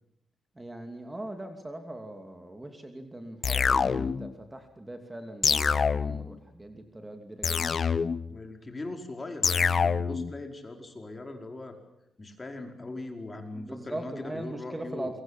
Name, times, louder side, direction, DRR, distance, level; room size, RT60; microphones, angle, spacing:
voice 1, 0.6-7.7 13.5-15.2, right 1 dB, 15° right, 5 dB, 2.8 m, -40 dB
sound 1, 3.4-4.3 5.4-6.3 7.4-8.3 9.4-10.3, left 6 dB, 45° left, 0.9 m, -26 dB
voice 2, 8.3-11.7 12.2-15.2, left 2 dB, 25° left, 4 dB, 4.8 m, -40 dB
27.0 x 24.0 x 7.4 m, 0.82 s
cardioid pair, 105°, 0 cm